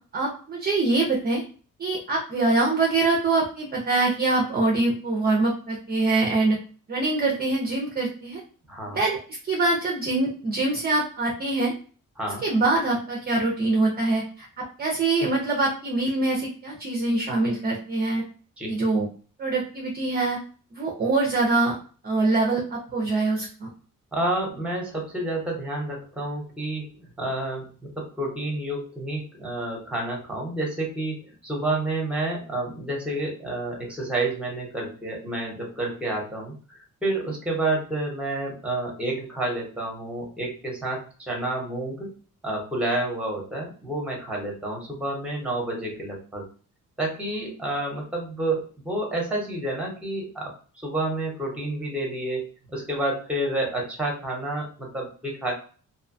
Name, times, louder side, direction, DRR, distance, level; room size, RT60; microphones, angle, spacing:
voice 1, 0.1-1.4 1.8-6.6 6.9-8.4 8.9-9.2 9.4-11.7 12.4-18.2 18.6-19.1 19.4-20.4 20.7-21.8 22.0-23.7, right 2 dB, 30° right, -1 dB, 0.4 m, -24 dB
voice 2, 8.7-9.0 12.2-12.4 18.6-18.8 24.1-27.7 28.0-36.5 37.0-42.1 42.4-46.5 47.0-50.5 50.8-55.5, right 2 dB, 5° right, -1 dB, 0.7 m, -29 dB
2.6 x 2.1 x 2.5 m, 0.40 s
wide cardioid pair, 175°, 33 cm